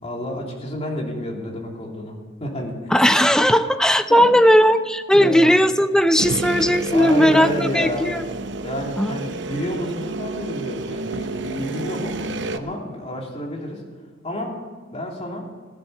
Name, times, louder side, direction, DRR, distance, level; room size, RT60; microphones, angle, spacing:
voice 1, 0.0-3.0 4.1-4.3 4.6-4.7 5.1-5.5 6.9-8.1 8.6-13.8 14.2-14.6 14.9-15.4, left 1 dB, 30° left, -1 dB, 2.9 m, -30 dB
voice 2, 2.9-8.3 9.0-9.2, equal, 5° left, 10 dB, 0.5 m, -17 dB
sound 1, 6.2-12.6, right 3 dB, 65° right, 0.8 m, -30 dB
15.5 x 11.5 x 6.7 m, 1.5 s
head